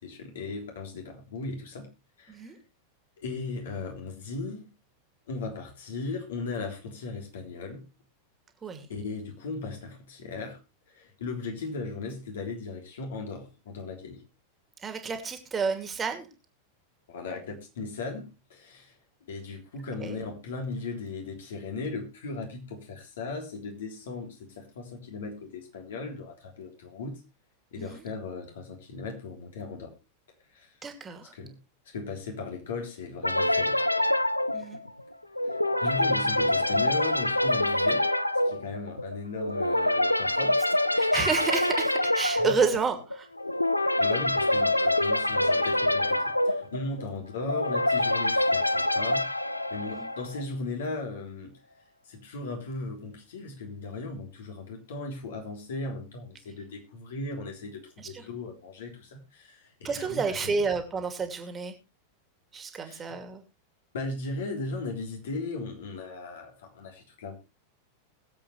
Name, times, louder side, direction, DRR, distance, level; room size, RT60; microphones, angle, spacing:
voice 1, 0.0-1.9 2.2-2.5 3.2-4.7 5.3-7.9 8.9-10.6 10.9-14.2 17.1-18.9 19.3-27.2 27.7-29.9 30.5-30.7 31.3-31.6 31.9-33.8 35.4-38.0 38.5-40.6 42.4-42.6 44.0-49.4 49.7-51.6 52.1-60.7 62.8-63.2 63.9-67.3, left 3 dB, 60° left, 2 dB, 3.4 m, -37 dB
voice 2, 14.8-16.3 20.0-20.2 27.8-28.0 30.8-31.3 34.5-34.8 40.9-43.3 49.9-50.1 58.0-58.2 59.8-61.7 62.5-63.4, right 5 dB, 20° right, 6 dB, 2.5 m, -30 dB
sound 1, 33.2-50.4, left 1 dB, 85° left, 0.5 m, -26 dB
21.5 x 7.7 x 3.2 m, 0.28 s
figure-of-eight pair, 90°, 0 cm